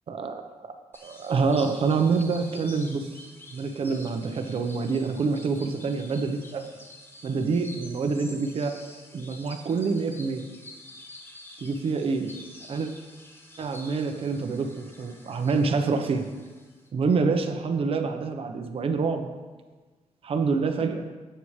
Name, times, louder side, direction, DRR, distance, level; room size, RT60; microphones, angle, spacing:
voice 1, 0.1-0.7 1.0-3.2 3.5-6.6 7.2-8.8 9.1-10.4 11.6-12.3 12.7-12.9 13.6-16.2 16.9-19.3 20.2-21.1, right 4 dB, 50° right, 6 dB, 1.0 m, -26 dB
sound 1, 0.9-16.9, left 1 dB, 20° left, 1.2 m, -48 dB
16.5 x 7.0 x 3.3 m, 1.3 s
cardioid pair, 130°, 12 cm